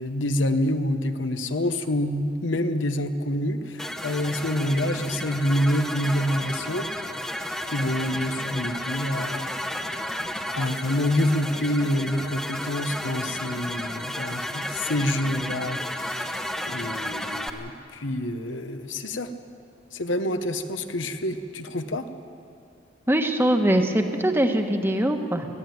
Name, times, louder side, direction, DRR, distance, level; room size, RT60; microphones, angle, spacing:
voice 1, 0.0-6.9 7.7-9.5 10.5-19.3 19.9-22.0, left 1 dB, 80° left, 8 dB, 1.1 m, -27 dB
sound 1, 3.8-17.5, left 1 dB, 5° left, 1.0 m, -32 dB
voice 2, 23.1-25.5, right 1 dB, 10° right, 5 dB, 1.3 m, -22 dB
21.0 x 14.5 x 9.4 m, 2.5 s
head